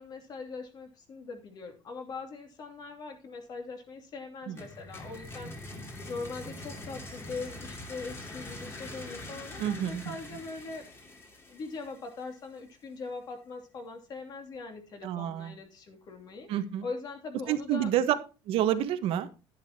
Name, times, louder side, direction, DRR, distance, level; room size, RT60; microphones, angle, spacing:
voice 1, 0.0-10.9 11.5-16.5 16.8-17.9, left 4 dB, 45° left, 4 dB, 2.8 m, -41 dB
sound 1, 4.6-12.3, left 2 dB, 25° left, 2.6 m, -44 dB
voice 2, 9.6-10.1 15.0-15.6 16.5-16.8 17.5-18.1 18.5-19.3, right 11 dB, 70° right, 9 dB, 1.3 m, -28 dB
11.0 x 10.5 x 2.9 m, 0.31 s
cardioid pair, 165°, 10 cm